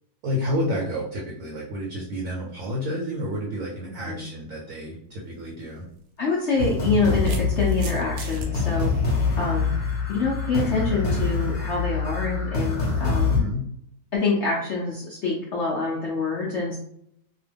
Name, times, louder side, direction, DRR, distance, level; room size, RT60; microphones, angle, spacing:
voice 1, 0.2-5.9 13.3-13.6, left 1 dB, 65° right, -2 dB, 0.9 m, -30 dB
sound 1, 5.3-5.5 6.6-8.5, right 3 dB, 80° right, 0.5 m, -39 dB
voice 2, 6.2-8.9 9.4-9.7 10.1-13.3 14.1-16.8, left 3 dB, 70° left, -4 dB, 0.7 m, -26 dB
sound 2, 6.6-13.4, left 4 dB, 45° left, 0.9 m, -25 dB
2.8 x 2.2 x 3.3 m, 0.73 s
omnidirectional pair, 1.8 m